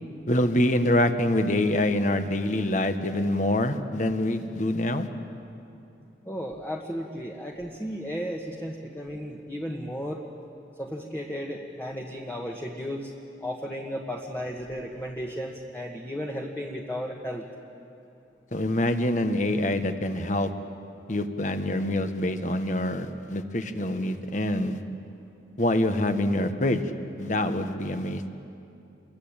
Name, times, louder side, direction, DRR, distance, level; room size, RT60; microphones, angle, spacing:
voice 1, 0.3-5.1 18.5-20.5 21.1-24.8 25.6-26.8 27.2-28.3, left 1 dB, 45° left, 8 dB, 1.5 m, -25 dB
voice 2, 6.2-10.2 10.8-13.1 13.4-17.5, equal, 10° left, -1 dB, 1.6 m, -34 dB
29.0 x 23.0 x 9.0 m, 2.7 s
head